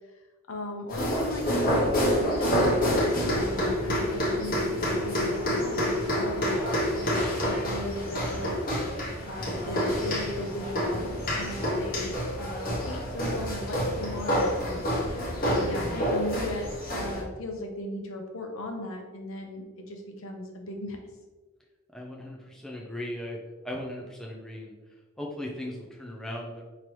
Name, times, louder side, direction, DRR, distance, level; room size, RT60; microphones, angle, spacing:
voice 1, 0.5-12.1 12.4-14.8 15.1-21.0, left 1 dB, 65° left, 2 dB, 0.8 m, -37 dB
sound 1, 0.9-17.2, equal, 40° left, 0.9 m, -28 dB
voice 2, 21.9-26.6, left 1 dB, ahead, -2 dB, 0.4 m, -38 dB
5.4 x 3.0 x 3.1 m, 1.3 s
head